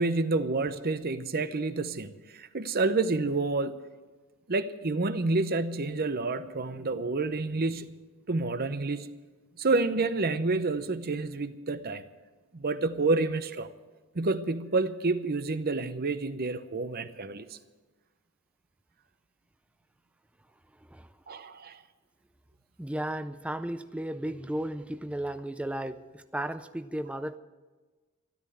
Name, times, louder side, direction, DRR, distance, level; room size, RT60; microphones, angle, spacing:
voice 1, 0.0-3.8 4.5-7.9 8.3-9.1 9.6-12.0 12.5-13.7 14.1-17.5 21.3-21.8, right 3 dB, 45° right, 12 dB, 0.8 m, -29 dB
voice 2, 22.8-27.4, right 1 dB, 5° right, 10 dB, 0.4 m, -34 dB
13.5 x 13.0 x 7.9 m, 1.3 s
head